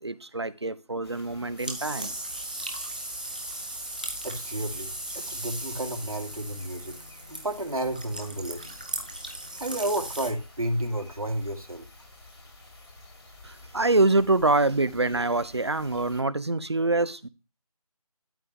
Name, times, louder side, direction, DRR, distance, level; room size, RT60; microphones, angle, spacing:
voice 1, 0.0-2.1 13.4-17.3, right 2 dB, 45° right, 17 dB, 0.7 m, -25 dB
sound 1, 1.0-16.2, left 2 dB, 45° left, 2.5 m, -50 dB
sound 2, 1.6-10.3, right 1 dB, 15° right, 0.8 m, -37 dB
voice 2, 4.2-7.0 7.3-8.8 9.6-11.9, right 1 dB, 65° right, 4 dB, 2.4 m, -31 dB
12.5 x 6.7 x 3.5 m, 0.29 s
figure-of-eight pair, 165°, 19 cm